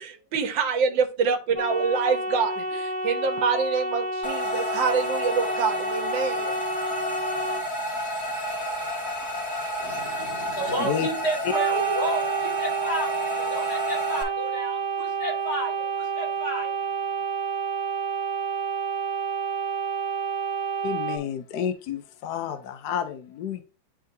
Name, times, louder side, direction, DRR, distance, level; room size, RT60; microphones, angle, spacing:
voice 1, 0.0-6.5, right 5 dB, 65° right, 1.6 m, -26 dB
sound 1, 1.6-7.6 11.5-21.2, right 4 dB, 30° right, 1.0 m, -29 dB
sound 2, 4.2-14.2, equal, 10° left, 0.9 m, -31 dB
voice 2, 9.8-16.8, right 1 dB, 45° left, 2.8 m, -32 dB
voice 3, 20.8-23.6, left 9 dB, 70° left, 1.0 m, -30 dB
10.0 x 3.6 x 2.6 m
omnidirectional pair, 2.4 m